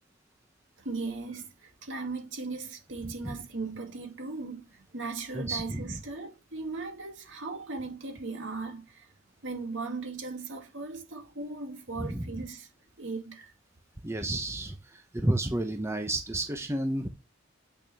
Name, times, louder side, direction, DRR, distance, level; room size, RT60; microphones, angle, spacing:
voice 1, 0.8-9.1 9.4-12.7 13.0-13.5, right 3 dB, 70° right, 2.6 m, -38 dB
voice 2, 5.3-6.0 12.0-12.3 14.0-17.1, right 1 dB, 15° right, 0.9 m, -31 dB
8.3 x 6.5 x 3.5 m
head